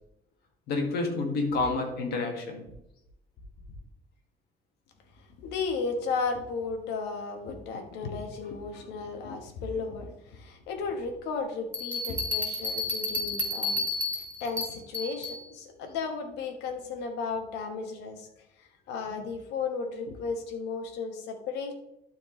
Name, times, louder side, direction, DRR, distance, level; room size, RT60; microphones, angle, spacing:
voice 1, 0.7-2.7 8.4-8.5, left 3 dB, 70° left, 3 dB, 1.8 m, -29 dB
voice 2, 5.4-13.9 14.4-18.3 18.6-21.7, left 4 dB, 85° left, 5 dB, 1.3 m, -34 dB
sound 1, 11.7-15.4, left 2 dB, 10° left, 2.1 m, -31 dB
12.0 x 4.5 x 3.2 m, 0.84 s
cardioid pair, 110°, 17 cm